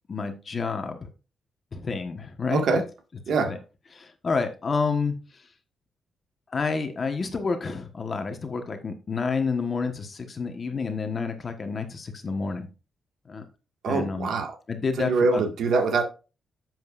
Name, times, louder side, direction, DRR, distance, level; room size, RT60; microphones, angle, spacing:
voice 1, 0.1-1.1 1.7-2.8 3.5-3.6 3.9-5.2 6.5-12.7 13.3-13.5 13.8-14.3 14.7-15.4, left 4 dB, 30° left, 1.3 m, -29 dB
voice 2, 2.5-2.8 3.3-3.6 13.8-14.5 15.0-16.0, right 4 dB, 65° right, 1.8 m, -24 dB
10.5 x 7.8 x 2.5 m
wide cardioid pair, 165°, 0 cm